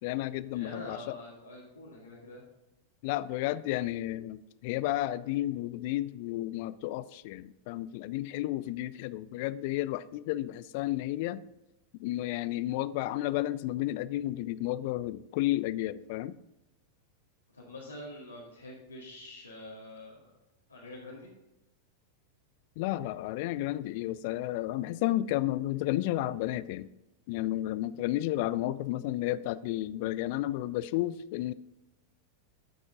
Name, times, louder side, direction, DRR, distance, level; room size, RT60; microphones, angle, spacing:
voice 1, 0.0-1.2 3.0-11.4 12.0-16.3 22.8-26.9 27.3-31.5, left 15 dB, 50° left, 17 dB, 0.4 m, -32 dB
voice 2, 0.5-2.5 17.5-20.3 20.7-21.3, left 1 dB, 85° left, -7 dB, 1.8 m, -46 dB
13.0 x 6.1 x 3.8 m, 0.92 s
figure-of-eight pair, 90°, 0 cm